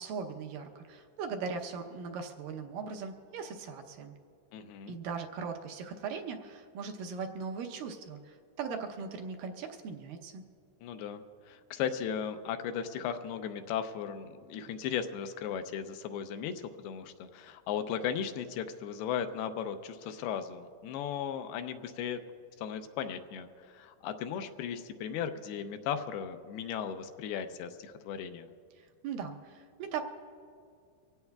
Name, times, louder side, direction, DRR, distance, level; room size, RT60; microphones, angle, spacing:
voice 1, 0.0-4.1 4.9-10.4 28.8-30.0, right 5 dB, 75° right, 4 dB, 2.2 m, -39 dB
voice 2, 4.5-5.0 10.8-22.2 22.6-28.5, left 8 dB, 80° left, 8 dB, 2.6 m, -36 dB
24.5 x 17.0 x 2.3 m, 2.3 s
omnidirectional pair, 4.6 m